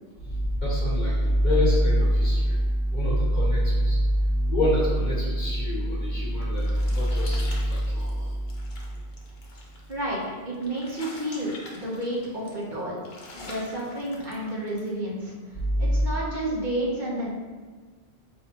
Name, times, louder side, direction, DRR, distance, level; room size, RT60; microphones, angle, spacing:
voice 1, 0.2-8.7 15.5-16.0, equal, 45° left, -7 dB, 1.2 m, -24 dB
sound 1, 6.0-14.9, left 2 dB, 75° left, 1.0 m, -46 dB
voice 2, 9.9-13.0 13.3-15.3 15.8-17.3, right 1 dB, 50° right, -5 dB, 1.0 m, -30 dB
5.3 x 2.7 x 2.8 m, 1.4 s
omnidirectional pair, 1.1 m